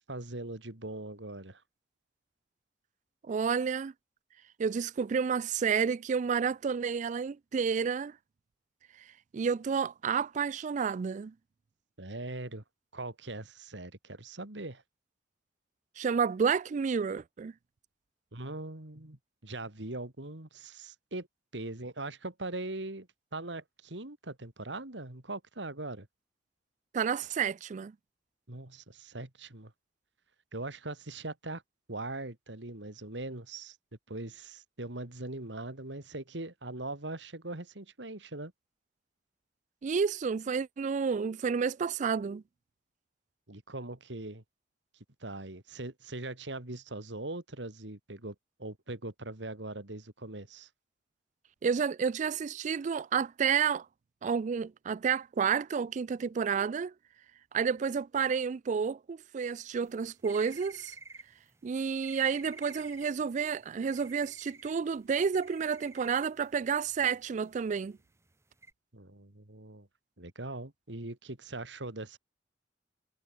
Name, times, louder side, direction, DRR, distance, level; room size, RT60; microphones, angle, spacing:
voice 1, 0.1-1.6 12.0-12.6 12.9-14.8 18.3-21.3 21.5-26.1 28.5-29.7 30.5-31.6 31.9-33.8 34.1-38.5 43.5-44.4 45.2-50.7 68.9-69.9 70.2-72.2, right 2 dB, 80° right, 2.9 m, -41 dB
voice 2, 3.3-3.9 4.6-8.1 9.3-11.3 16.0-17.5 26.9-27.9 39.8-42.4 51.6-53.9 54.2-56.9 57.5-60.9 61.6-68.0, right 6 dB, 40° right, 0.3 m, -30 dB
sound 1, 59.8-68.7, right 3 dB, 15° right, 1.6 m, -51 dB
head